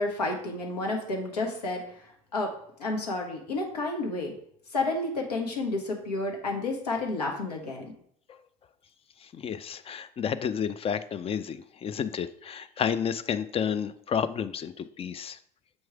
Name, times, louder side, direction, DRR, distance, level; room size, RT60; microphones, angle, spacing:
voice 1, 0.0-1.8 2.3-2.5 2.8-4.3 4.7-7.8, left 2 dB, 90° left, 1 dB, 1.2 m, -30 dB
voice 2, 9.2-15.4, left 7 dB, 30° left, 13 dB, 0.4 m, -31 dB
7.2 x 3.2 x 4.7 m, 0.65 s
hypercardioid pair, 70°, 20 cm